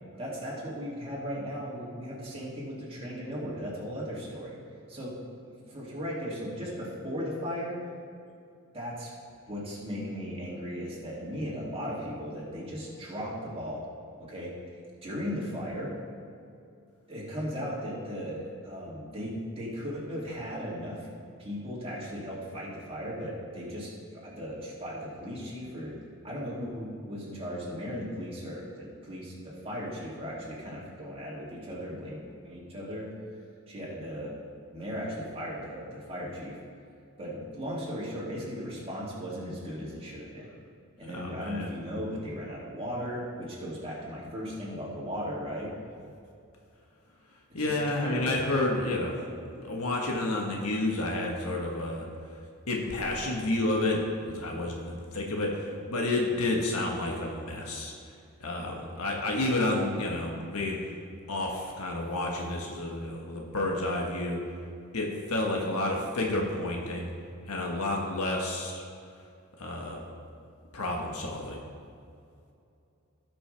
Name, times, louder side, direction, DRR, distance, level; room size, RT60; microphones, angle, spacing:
voice 1, 0.2-4.5 4.9-5.1 5.7-7.8 8.7-9.1 9.5-13.8 14.2-15.9 17.1-21.1 21.4-25.9 26.2-33.1 33.7-34.3 34.7-36.6 37.2-40.5 41.0-45.7 47.6-48.4, equal, 25° right, -6 dB, 2.5 m, -37 dB
voice 2, 41.1-41.7 47.5-49.2 49.5-52.1 52.7-57.9 58.4-60.8 61.3-64.4 64.9-67.1 67.5-68.8 69.6-70.0 70.7-71.6, left 2 dB, 75° left, -1 dB, 1.3 m, -30 dB
17.5 x 6.1 x 3.4 m, 2.5 s
head